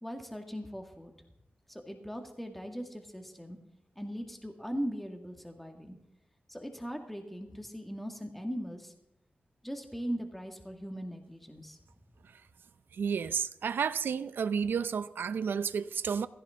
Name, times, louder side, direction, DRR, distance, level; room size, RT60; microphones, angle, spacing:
voice 1, 0.0-1.1 1.7-3.6 4.0-6.0 6.5-8.9 9.6-11.8, equal, 5° left, 1.9 m, -39 dB
voice 2, 12.9-16.3, right 6 dB, 90° right, 0.6 m, -31 dB
16.0 x 15.5 x 3.7 m
wide cardioid pair, 105°, 3 cm